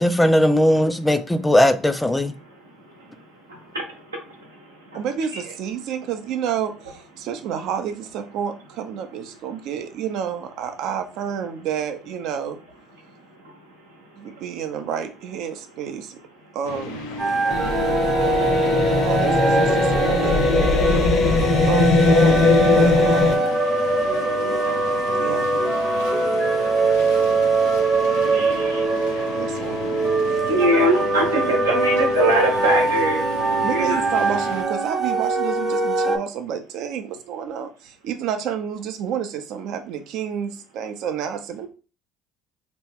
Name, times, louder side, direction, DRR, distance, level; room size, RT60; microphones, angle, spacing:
voice 1, 0.0-2.3, left 1 dB, 10° left, 0.4 m, -18 dB
voice 2, 3.5-5.0 24.7-24.8 28.0-28.9 30.5-33.2 33.7-34.0, right 1 dB, 90° right, 0.9 m, -23 dB
voice 3, 4.9-12.6 14.2-16.2 16.5-17.1 18.6-20.4 21.7-23.6 25.1-25.6 29.3-30.0 33.6-41.7, right 8 dB, 65° right, 0.5 m, -30 dB
sound 1, 16.6-34.6, left 4 dB, 80° left, 0.6 m, -35 dB
sound 2, 17.2-36.2, right 2 dB, 25° right, 0.7 m, -22 dB
sound 3, 17.5-23.4, left 3 dB, 55° left, 0.8 m, -19 dB
2.9 x 2.2 x 3.5 m
hypercardioid pair, 60°, 0 cm